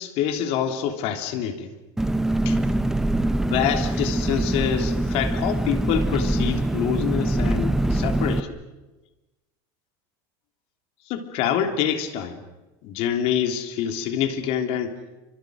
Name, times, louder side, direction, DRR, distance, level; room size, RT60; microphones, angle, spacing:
voice 1, 0.0-1.7 2.4-2.6 3.5-8.6 11.1-12.4 12.8-15.0, left 9 dB, 55° left, 6 dB, 3.3 m, -26 dB
Engine, 2.0-8.4, right 1 dB, 5° right, 0.8 m, -24 dB
29.5 x 26.0 x 6.5 m, 1.1 s
supercardioid pair, 140°, 12 cm